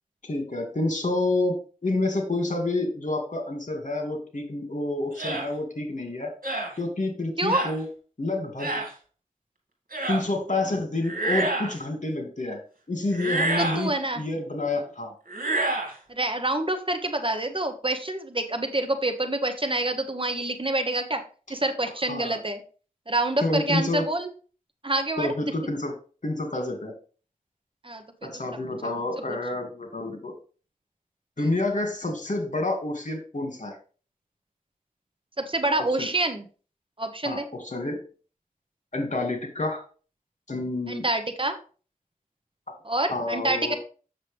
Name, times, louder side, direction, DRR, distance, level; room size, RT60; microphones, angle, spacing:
voice 1, 0.2-6.3 6.8-7.9 8.2-8.8 10.1-12.6 12.9-15.1 22.1-22.4 23.4-24.0 25.2-25.9 26.2-26.9 28.2-30.3 31.4-33.8 36.0-36.1 37.2-38.0 38.9-39.8 40.5-41.0 43.1-43.8, left 2 dB, 60° left, 4 dB, 2.2 m, -28 dB
sound 1, 5.2-5.5 6.4-6.7 7.5-7.7 8.6-8.9 9.9-10.2 11.0-11.8 13.1-13.8 15.3-15.9, right 2 dB, 75° right, 2.1 m, -27 dB
voice 2, 13.6-14.2 16.1-21.2 21.5-22.6 23.1-24.3 24.8-25.3 27.8-28.3 29.3-29.4 35.4-36.4 37.0-37.5 40.9-41.6 42.8-43.7, right 2 dB, 35° right, 7 dB, 1.1 m, -27 dB
7.6 x 6.7 x 3.4 m, 0.38 s
wide cardioid pair, 45°, 14 cm